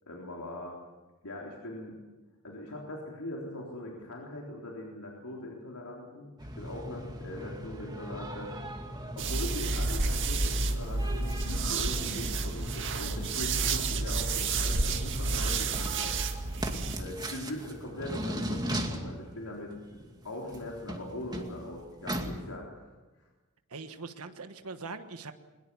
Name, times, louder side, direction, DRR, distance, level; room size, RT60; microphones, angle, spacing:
voice 1, 0.0-0.8 1.2-2.0 2.4-8.5 9.2-16.1 16.9-22.9 23.2-23.3, left 1 dB, 85° left, -2 dB, 3.8 m, -41 dB
sound 1, 6.4-22.4, right 1 dB, 20° right, 2.3 m, -39 dB
sound 2, 9.2-17.0, right 3 dB, 55° right, 1.9 m, -30 dB
voice 2, 23.7-25.3, right 4 dB, 75° right, 9 dB, 1.3 m, -41 dB
22.0 x 21.5 x 7.1 m, 1.2 s
head